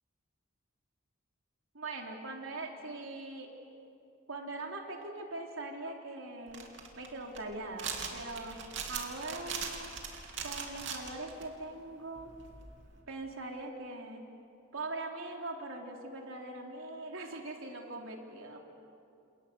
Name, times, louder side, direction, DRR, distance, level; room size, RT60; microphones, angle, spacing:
voice 1, 1.7-3.5 4.3-6.7 7.0-8.6 8.9-9.9 10.4-12.3 13.1-14.2 14.7-18.6, right 2 dB, 80° right, 1 dB, 3.6 m, -41 dB
sound 1, 6.5-11.4 12.2-13.0, right 6 dB, 60° right, 3.2 m, -41 dB
29.5 x 28.5 x 6.9 m, 2.6 s
head